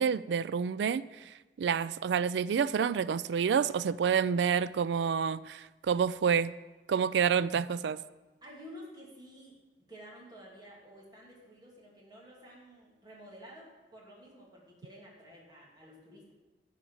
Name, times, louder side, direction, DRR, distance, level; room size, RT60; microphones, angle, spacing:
voice 1, 0.0-6.5 6.9-8.0, right 7 dB, 70° right, 0.3 m, -28 dB
voice 2, 8.4-16.3, equal, 25° right, 2.6 m, -51 dB
11.0 x 4.9 x 7.1 m
head